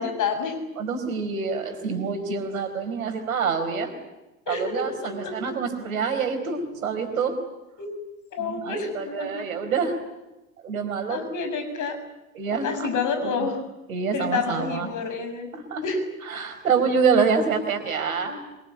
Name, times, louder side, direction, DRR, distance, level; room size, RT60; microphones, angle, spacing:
voice 1, 0.0-0.6 4.5-5.6 7.8-7.9 8.3-9.5 11.1-12.0 12.5-13.6 14.1-15.5 15.8-16.0, left 4 dB, 45° left, 8 dB, 6.9 m, -29 dB
voice 2, 0.8-3.9 4.5-7.4 8.4-10.0 10.6-11.3 12.3-12.9 13.3-13.5 13.9-14.9 15.5-15.8 16.3-18.4, right 5 dB, 85° right, 6 dB, 4.7 m, -26 dB
26.0 x 24.5 x 8.7 m, 1.0 s
hypercardioid pair, 70°, 41 cm